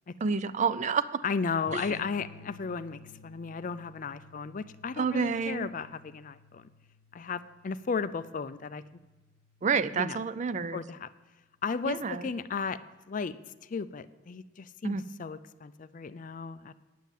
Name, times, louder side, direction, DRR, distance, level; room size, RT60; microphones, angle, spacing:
voice 1, 0.2-1.2 1.7-1.8 5.0-5.7 9.6-10.8 11.8-12.3 14.8-15.0, right 5 dB, 35° right, 14 dB, 0.4 m, -29 dB
voice 2, 1.2-6.7 7.1-8.8 9.9-10.2 10.7-11.1 11.6-12.8 13.1-13.4 13.6-16.7, left 5 dB, 40° left, 14 dB, 0.4 m, -35 dB
sound 1, 1.7-10.7 12.2-12.7, left 2 dB, 70° left, 0.8 m, -54 dB
9.4 x 7.2 x 7.4 m, 1.2 s
head